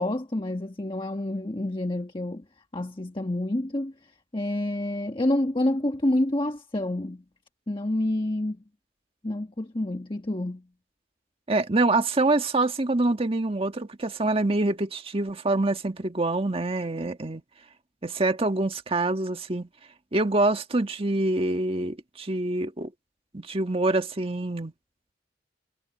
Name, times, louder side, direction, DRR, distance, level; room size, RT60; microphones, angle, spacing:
voice 1, 0.0-2.4 2.7-3.9 4.3-7.2 7.7-8.6 9.2-10.6, left 1 dB, 30° left, 1.3 m, -28 dB
voice 2, 11.5-17.4 18.0-19.7 20.1-22.9 23.3-24.7, right 2 dB, 30° right, 1.5 m, -25 dB
head